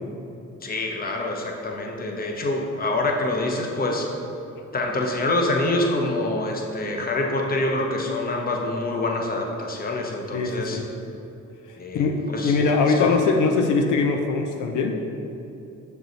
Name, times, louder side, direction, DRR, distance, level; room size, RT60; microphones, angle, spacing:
voice 1, 0.6-4.1 4.7-10.8 11.8-12.6 12.9-13.2, left 2 dB, 30° left, 1 dB, 0.9 m, -26 dB
voice 2, 10.3-10.8 11.9-12.1 12.4-15.0, left 4 dB, 80° left, 3 dB, 0.6 m, -21 dB
6.4 x 4.7 x 4.0 m, 2.7 s
cardioid pair, 90°, 30 cm